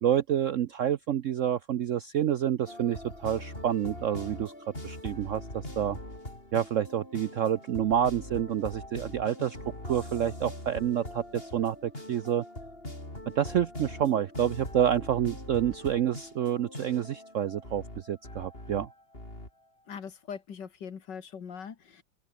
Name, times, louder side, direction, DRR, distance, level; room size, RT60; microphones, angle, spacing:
voice 1, 0.0-4.5 4.8-6.0 6.5-9.6 9.8-12.4 13.4-18.9, right 10 dB, 65° right, 0.8 m, -28 dB
sound 1, 2.7-19.5, left 1 dB, 30° left, 8.1 m, -42 dB
voice 2, 19.9-22.0, left 7 dB, 70° left, 2.5 m, -41 dB
open air
omnidirectional pair, 2.0 m